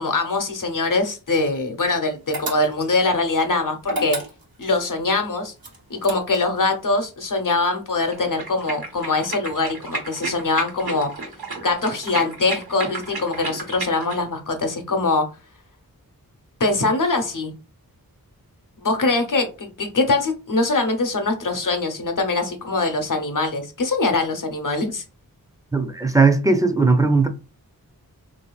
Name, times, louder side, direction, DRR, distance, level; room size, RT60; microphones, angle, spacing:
voice 1, 0.0-4.2 4.6-5.5 5.9-11.1 11.6-15.3 16.6-17.5 18.8-25.0, left 3 dB, 60° left, 0.9 m, -23 dB
sound 1, 2.3-3.0 3.8-4.7 5.6-6.6, right 1 dB, 70° right, 0.9 m, -30 dB
sound 2, 8.0-14.2, right 3 dB, 85° right, 1.2 m, -33 dB
voice 2, 25.7-27.3, right 4 dB, 10° right, 0.5 m, -17 dB
3.8 x 2.7 x 2.3 m
wide cardioid pair, 50°, 37 cm